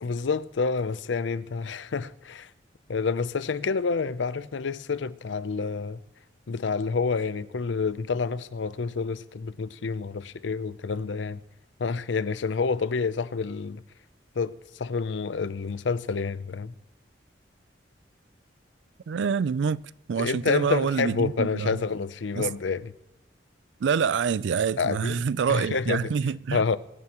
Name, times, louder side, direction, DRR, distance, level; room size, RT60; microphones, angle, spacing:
voice 1, 0.0-2.5 2.9-6.0 6.5-11.4 11.8-13.8 14.4-16.7 20.2-22.9 24.8-25.2 25.5-26.1 26.5-26.8, left 5 dB, 85° left, 0.5 m, -28 dB
voice 2, 19.1-19.8 20.1-21.8 22.4-22.5 23.8-26.6, right 6 dB, 75° right, 0.4 m, -26 dB
23.0 x 9.5 x 3.0 m
head